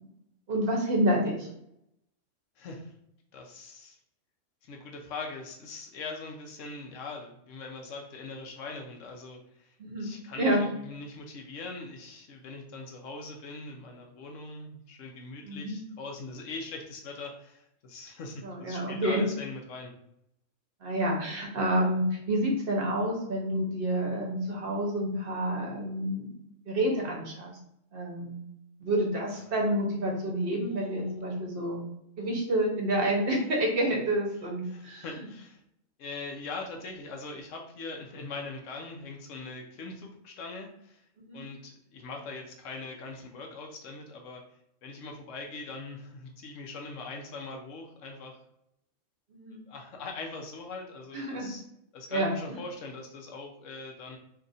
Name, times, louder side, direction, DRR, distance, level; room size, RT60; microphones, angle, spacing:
voice 1, 0.5-1.5 9.8-10.6 15.4-15.8 18.4-19.3 20.8-26.3 26.7-27.5 27.9-28.4 28.8-31.8 32.2-35.3 41.2-41.4 49.3-49.6 51.1-51.5 52.1-52.3, right 1 dB, 55° right, -1 dB, 0.8 m, -29 dB
voice 2, 2.6-2.9 3.3-4.0 4.6-19.9 30.6-31.2 34.7-35.6 36.0-41.0 41.3-44.4 44.8-48.4 49.7-51.6 51.9-54.2, left 3 dB, 75° left, 2 dB, 1.0 m, -41 dB
2.8 x 2.4 x 3.9 m, 0.77 s
omnidirectional pair, 1.3 m